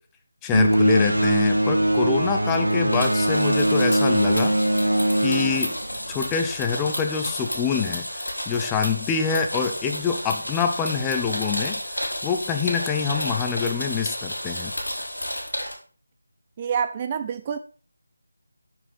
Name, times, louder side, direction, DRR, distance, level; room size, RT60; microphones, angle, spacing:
voice 1, 0.4-4.6 5.2-5.8 6.1-14.7, left 6 dB, 10° left, 0.7 m, -26 dB
sound 1, 0.5-6.5, right 1 dB, 85° right, 2.0 m, -21 dB
sound 2, 2.8-15.7, left 1 dB, 85° left, 4.1 m, -31 dB
voice 2, 16.6-17.6, right 7 dB, 25° right, 0.4 m, -27 dB
7.2 x 6.2 x 5.0 m
figure-of-eight pair, 165°, 0 cm